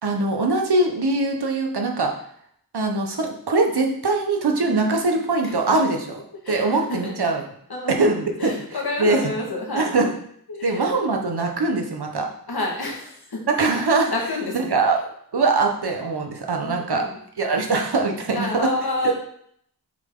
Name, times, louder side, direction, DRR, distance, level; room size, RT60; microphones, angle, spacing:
voice 1, 0.0-2.1 2.7-7.5 7.9-8.5 9.0-9.2 9.7-10.1 10.6-12.3 13.5-14.1 14.5-15.0 15.3-17.0 17.4-18.7 19.0-19.1, right 3 dB, 85° right, 2 dB, 1.3 m, -22 dB
voice 2, 6.4-7.1 7.7-8.1 8.4-9.9 10.5-10.9 12.5-13.4 14.1-14.7 16.6-17.2 18.3-19.1, left 2 dB, 75° left, -1 dB, 2.0 m, -29 dB
7.3 x 5.3 x 3.9 m, 0.66 s
wide cardioid pair, 85°, 38 cm